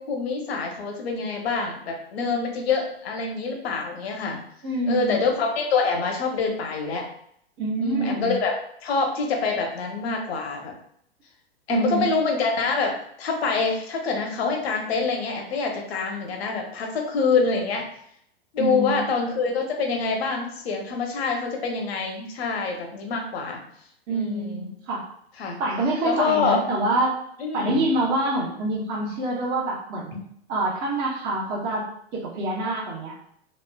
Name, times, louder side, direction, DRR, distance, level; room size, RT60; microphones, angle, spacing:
voice 1, 0.0-4.4 4.9-7.1 7.8-8.5 8.8-10.7 11.7-17.8 18.5-23.6 24.1-24.7 25.4-25.6 26.0-26.6 27.4-27.8, left 4 dB, 75° left, 2 dB, 0.8 m, -26 dB
voice 2, 4.6-5.2 7.6-8.3 11.7-12.1 18.6-19.1 24.1-25.0 25.6-27.1 27.5-30.2 30.5-31.8 32.2-33.2, right 2 dB, 30° right, -4 dB, 0.8 m, -26 dB
3.1 x 2.0 x 2.2 m, 0.69 s
hypercardioid pair, 120°, 32 cm